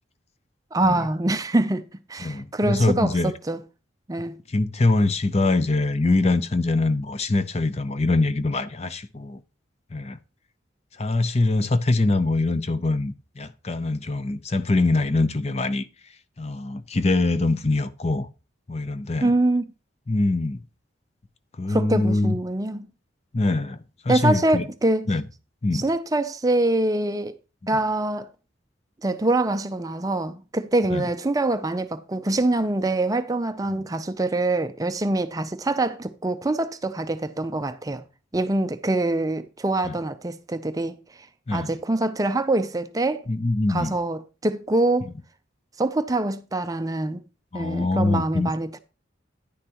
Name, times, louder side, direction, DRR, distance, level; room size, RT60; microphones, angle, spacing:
voice 1, 0.7-1.8 2.1-3.6 4.1-4.4 19.2-19.7 21.7-22.9 24.1-25.1 25.7-27.4 27.7-28.3 29.0-38.0 38.3-41.3 41.5-43.3 43.7-45.1 45.8-47.2 47.5-48.8, right 2 dB, 20° right, 0.4 m, -24 dB
voice 2, 2.2-3.3 4.5-9.4 9.9-10.2 11.0-15.9 16.4-18.3 18.7-19.3 20.1-20.6 21.6-22.3 23.3-24.7 25.1-25.3 25.6-25.8 27.7-27.8 30.9-31.1 33.7-33.8 39.8-40.0 41.5-41.7 43.3-43.9 47.5-48.5, left 2 dB, 30° left, 0.6 m, -23 dB
10.0 x 9.8 x 2.9 m
head